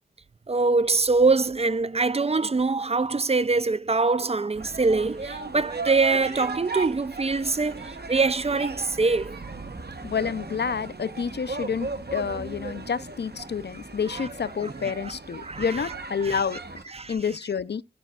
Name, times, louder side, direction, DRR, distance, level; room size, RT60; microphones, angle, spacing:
voice 1, 0.5-9.4 14.1-14.3 14.8-14.9 15.4-15.9 16.3-16.4 16.9-17.1, right 3 dB, 35° right, 0.4 m, -24 dB
sound 1, 4.5-16.8, right 3 dB, 70° right, 1.0 m, -37 dB
voice 2, 10.0-16.8 17.1-17.8, left 6 dB, 80° left, 0.4 m, -29 dB
14.5 x 5.8 x 2.2 m
wide cardioid pair, 45°, 17 cm